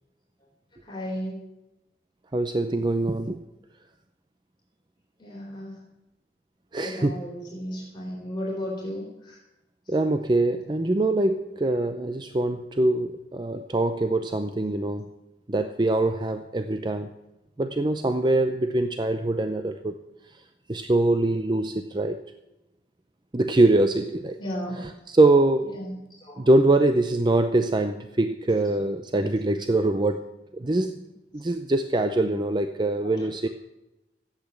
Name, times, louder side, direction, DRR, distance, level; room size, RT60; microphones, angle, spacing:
voice 1, 0.8-1.4 5.2-5.7 6.8-9.4 17.6-17.7 24.4-24.8 25.7-25.9 26.2-26.5 33.1-33.3, equal, 25° left, -3 dB, 3.4 m, -34 dB
voice 2, 2.3-3.4 6.7-7.3 9.9-15.1 15.5-17.1 17.6-20.0 20.7-22.2 23.3-24.4 24.7-25.8 26.4-30.3 30.5-31.0 31.3-33.5, right 2 dB, 25° right, 8 dB, 0.6 m, -23 dB
14.0 x 8.5 x 8.1 m, 0.96 s
head